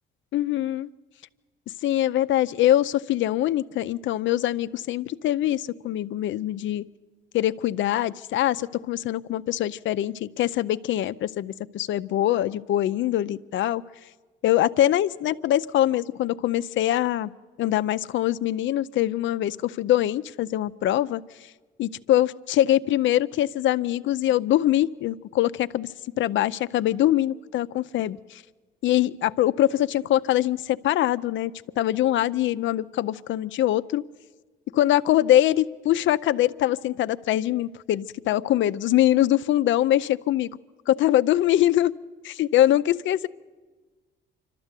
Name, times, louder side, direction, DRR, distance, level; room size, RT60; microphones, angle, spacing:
voice 1, 0.3-0.9 1.8-6.8 7.3-13.8 14.4-17.3 17.6-21.2 21.8-25.9 26.2-28.4 28.8-34.0 34.7-40.5 41.0-41.9 42.2-43.3, left 13 dB, 75° left, 13 dB, 0.5 m, -23 dB
26.0 x 13.0 x 8.2 m, 1.3 s
cardioid pair, 90°, 20 cm